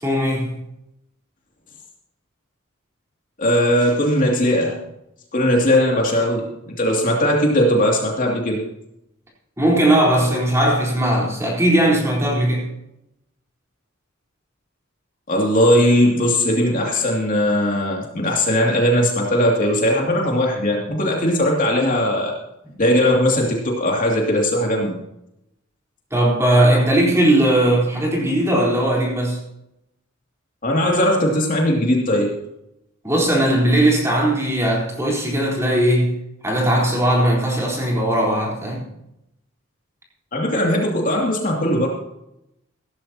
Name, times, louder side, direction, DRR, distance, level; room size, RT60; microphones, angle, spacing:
voice 1, 0.0-0.5 9.6-12.7 26.1-29.4 33.0-36.1 36.4-38.8, right 1 dB, 15° right, -3 dB, 3.8 m, -18 dB
voice 2, 3.4-4.8 5.3-8.6 15.3-22.3 22.8-25.0 30.6-32.3 40.3-41.9, equal, 40° left, -1 dB, 2.5 m, -19 dB
16.0 x 13.5 x 2.9 m, 0.83 s
head